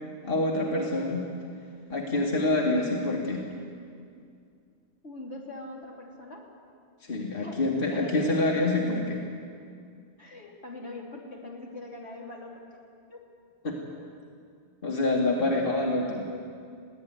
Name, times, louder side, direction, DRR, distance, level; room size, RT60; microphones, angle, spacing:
voice 1, 0.2-1.3 1.9-3.5 7.0-9.2 13.6-13.8 14.8-16.2, left 2 dB, 50° left, -1 dB, 2.2 m, -26 dB
voice 2, 5.0-6.5 7.4-8.4 10.2-12.6 13.1-13.2 15.5-15.6, left 2 dB, 75° left, -2 dB, 3.6 m, -42 dB
21.5 x 16.5 x 9.5 m, 2.3 s
omnidirectional pair, 1.1 m